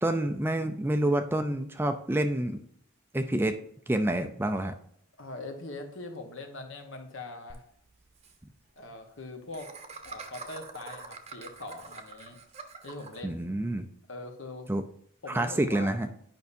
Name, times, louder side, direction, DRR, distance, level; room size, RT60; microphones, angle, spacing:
voice 1, 0.0-2.6 3.1-3.5 3.9-4.7 13.2-13.9 14.7-14.8 15.3-16.1, right 1 dB, 10° right, 6 dB, 0.4 m, -28 dB
voice 2, 5.2-7.6 8.8-9.7 10.0-12.4 12.8-13.4 14.1-14.7 15.2-16.0, left 2 dB, 65° left, 5 dB, 1.2 m, -42 dB
Laughter, 7.5-7.6 7.9-8.0 8.2-8.3 9.5-13.2, right 4 dB, 30° right, 0.8 m, -44 dB
9.2 x 5.4 x 2.7 m, 0.67 s
head